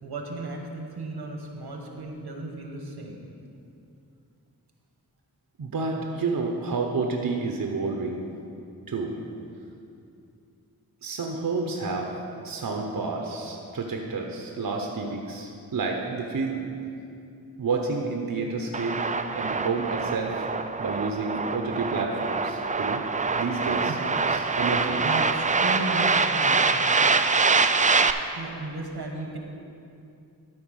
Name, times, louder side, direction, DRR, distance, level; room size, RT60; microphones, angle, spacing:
voice 1, 0.0-3.2 23.6-24.5 25.0-27.0 28.3-29.4, right 2 dB, 90° right, 1 dB, 1.3 m, -35 dB
voice 2, 5.6-8.2 8.9-9.2 11.0-12.2 12.4-16.6 17.6-19.0 19.3-20.5 20.8-23.0 23.4-24.0 24.6-25.0, right 4 dB, 65° right, 1 dB, 0.8 m, -29 dB
sound 1, 18.7-28.1, right 4 dB, 20° right, 0.3 m, -24 dB
12.5 x 4.6 x 6.3 m, 2.6 s
wide cardioid pair, 80°, 38 cm